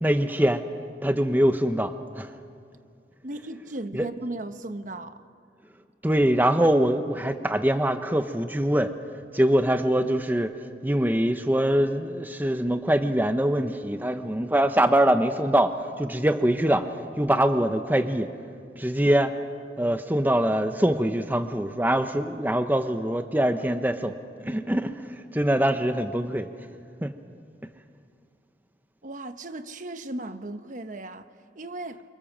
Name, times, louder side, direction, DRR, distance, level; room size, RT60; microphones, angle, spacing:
voice 1, 0.0-0.6 1.0-2.3 3.9-4.1 6.0-8.9 9.3-10.5 10.8-16.9 17.2-18.3 18.8-19.3 19.8-26.5 27.0-27.1, right 1 dB, 10° right, 0.9 m, -23 dB
voice 2, 3.2-5.2 29.0-32.0, right 2 dB, 45° right, 1.0 m, -36 dB
28.5 x 25.5 x 7.4 m
head